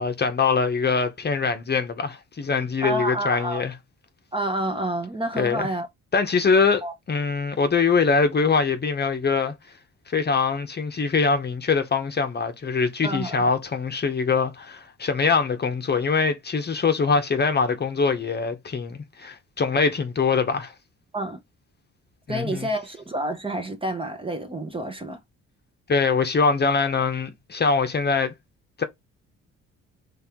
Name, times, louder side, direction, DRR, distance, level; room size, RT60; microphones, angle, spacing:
voice 1, 0.0-3.7 5.4-5.6 6.1-9.5 10.1-20.7 22.3-22.7 25.9-28.3 28.8-28.9, left 5 dB, 35° left, 0.9 m, -23 dB
voice 2, 2.8-3.6 4.3-5.9 6.8-6.9 13.0-13.5 21.1-21.4 22.3-25.2, right 1 dB, 15° right, 0.9 m, -28 dB
4.4 x 3.3 x 3.6 m
cardioid pair, 90°, 30 cm